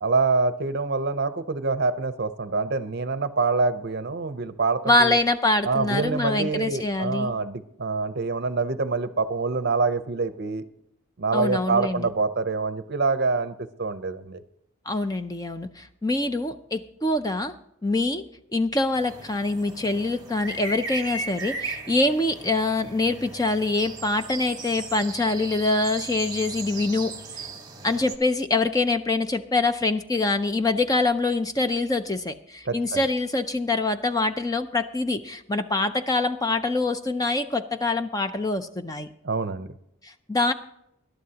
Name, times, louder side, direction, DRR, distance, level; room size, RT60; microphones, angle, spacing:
voice 1, 0.0-5.2 5.6-10.6 11.2-14.4 32.7-33.0 39.2-39.7, right 4 dB, 50° right, 12 dB, 0.6 m, -26 dB
voice 2, 4.8-7.3 11.3-12.1 14.9-17.5 17.8-18.2 18.5-27.4 27.8-39.1 40.0-40.5, left 2 dB, 15° left, 9 dB, 0.4 m, -25 dB
sound 1, 18.9-28.1, right 3 dB, 15° right, 1.1 m, -37 dB
20.5 x 11.5 x 2.8 m, 0.75 s
head